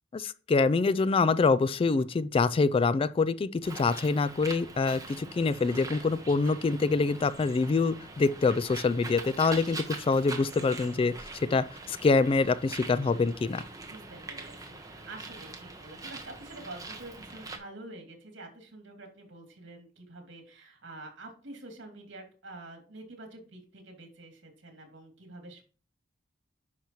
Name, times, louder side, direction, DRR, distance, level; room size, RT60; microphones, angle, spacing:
voice 1, 0.1-11.1 11.5-13.6, left 4 dB, 30° left, 0.3 m, -25 dB
Bird, 3.6-17.6, right 3 dB, 20° right, 1.3 m, -43 dB
voice 2, 13.9-25.6, right 2 dB, 70° right, 2.8 m, -47 dB
10.0 x 5.9 x 3.1 m
head